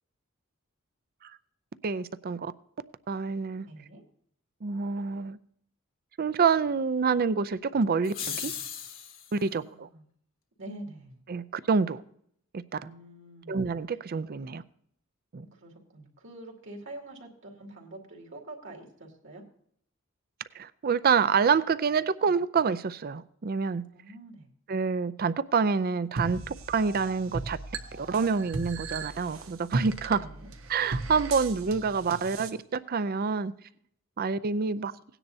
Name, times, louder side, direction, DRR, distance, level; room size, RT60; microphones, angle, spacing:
voice 1, 1.8-2.5 3.1-3.7 4.6-5.4 6.2-8.5 9.3-9.9 11.3-12.0 12.5-12.8 13.5-14.6 15.3-15.5 20.6-23.8 24.7-27.6 28.0-30.2 30.7-33.5 34.2-34.9, right 5 dB, 45° right, 0.5 m, -27 dB
voice 2, 3.6-4.0 9.3-10.0 10.6-11.2 12.8-13.6 15.4-19.4 23.9-24.5 30.0-30.5, right 1 dB, 65° right, 2.5 m, -46 dB
sound 1, 8.0-9.4, left 8 dB, 70° left, 1.5 m, -36 dB
sound 2, 26.2-32.5, right 3 dB, 85° right, 1.1 m, -36 dB
17.5 x 10.0 x 2.7 m
head